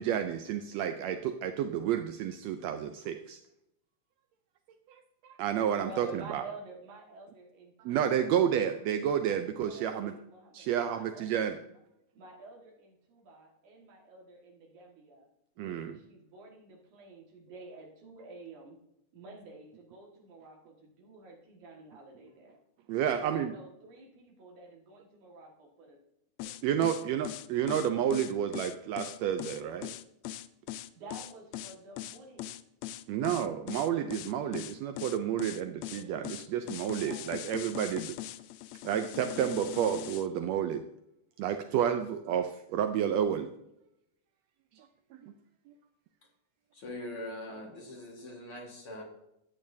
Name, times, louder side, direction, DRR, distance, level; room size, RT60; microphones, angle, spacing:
voice 1, 0.0-3.4 4.9-6.4 7.8-10.1 10.5-11.6 15.6-15.9 22.9-23.5 26.6-29.9 33.1-38.1 38.8-40.8 41.4-43.5 44.8-44.9 45.1-45.3 45.7-45.8, right 9 dB, 85° right, 7 dB, 1.5 m, -30 dB
voice 2, 5.8-8.3 9.7-11.8 12.1-15.3 15.5-18.8 19.1-22.6 23.2-26.0 26.4-26.5 26.8-27.1 30.9-32.5 36.9-38.0 47.5-48.1, right 2 dB, 70° right, -1 dB, 3.3 m, -50 dB
sound 1, 26.4-40.3, left 13 dB, 90° left, 1.5 m, -40 dB
voice 3, 46.7-49.0, left 1 dB, 50° left, -1 dB, 2.4 m, -42 dB
13.5 x 8.9 x 2.7 m, 0.81 s
omnidirectional pair, 3.6 m